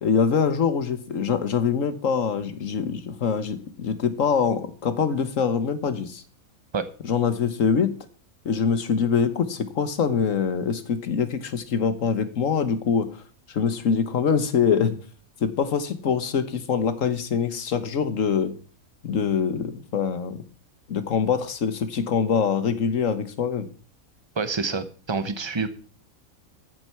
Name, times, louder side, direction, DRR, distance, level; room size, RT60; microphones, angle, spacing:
voice 1, 0.0-6.2 7.0-7.9 8.4-13.1 13.5-15.0 15.4-18.6 19.0-20.4 20.9-23.7, left 6 dB, 65° left, 11 dB, 1.6 m, -24 dB
voice 2, 24.3-25.7, right 4 dB, 20° right, 11 dB, 1.0 m, -27 dB
14.0 x 7.8 x 5.8 m, 0.43 s
omnidirectional pair, 1.5 m